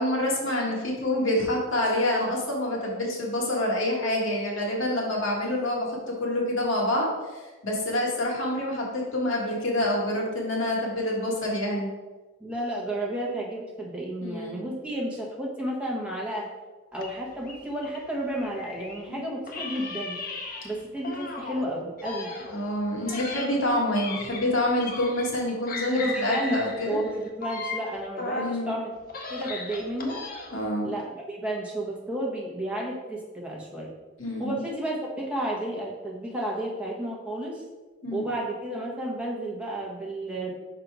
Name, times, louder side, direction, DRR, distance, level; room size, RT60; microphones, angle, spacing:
voice 1, 0.0-11.9 14.2-14.7 19.1-19.2 22.5-27.0 28.3-28.8 30.5-30.9 34.2-34.6 38.0-38.3, left 1 dB, 70° left, -2 dB, 1.5 m, -27 dB
voice 2, 12.4-16.5 16.9-20.2 20.6-22.3 25.9-26.6 26.8-28.9 29.3-30.2 30.8-33.9 34.4-37.6 38.1-40.5, right 1 dB, 5° right, -3 dB, 1.0 m, -32 dB
sound 1, 17.0-19.1 19.5-21.7 22.0-25.4 25.7-28.6 29.0-30.7, left 3 dB, 45° left, 0.7 m, -36 dB
5.6 x 4.0 x 4.7 m, 1.2 s
head